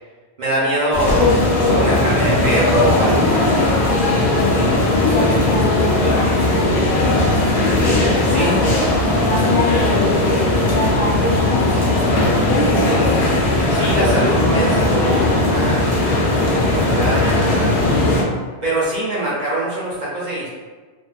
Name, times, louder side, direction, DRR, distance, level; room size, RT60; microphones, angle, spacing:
voice 1, 0.4-1.2 1.7-3.8 8.2-8.6 13.7-15.9 16.3-17.9 18.6-20.5, right 1 dB, 50° right, -7 dB, 0.7 m, -23 dB
sound 1, 0.9-18.2, left 2 dB, 80° left, 0.9 m, -17 dB
voice 2, 4.9-8.7 9.2-13.8 14.0-15.7, left 1 dB, 55° left, -9 dB, 0.9 m, -26 dB
2.4 x 2.3 x 2.3 m, 1.4 s
omnidirectional pair, 1.1 m